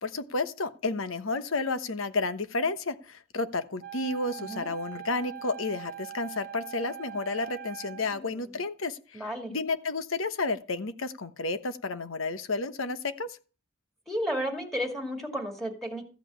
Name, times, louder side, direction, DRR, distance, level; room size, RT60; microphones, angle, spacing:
voice 1, 0.0-9.2 9.5-13.4, left 3 dB, 75° left, 10 dB, 1.1 m, -31 dB
Wind instrument woodwind instrument, 3.8-8.2, right 11 dB, 45° right, 1.1 m, -42 dB
voice 2, 4.4-4.7 7.9-8.3 9.1-9.5 14.1-16.1, equal, ahead, 2 dB, 2.3 m, -33 dB
14.5 x 5.3 x 8.5 m, 0.36 s
head